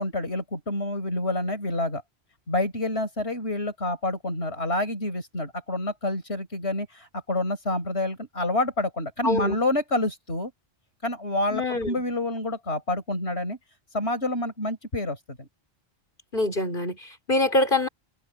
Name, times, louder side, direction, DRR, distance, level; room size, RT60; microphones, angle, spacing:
voice 1, 0.0-2.0 2.5-10.5 11.0-13.6 13.9-15.5, left 2 dB, 85° left, 6.0 m, -28 dB
voice 2, 9.2-9.6 11.5-12.0 16.3-17.9, left 2 dB, 55° left, 4.5 m, -25 dB
omnidirectional pair, 1.1 m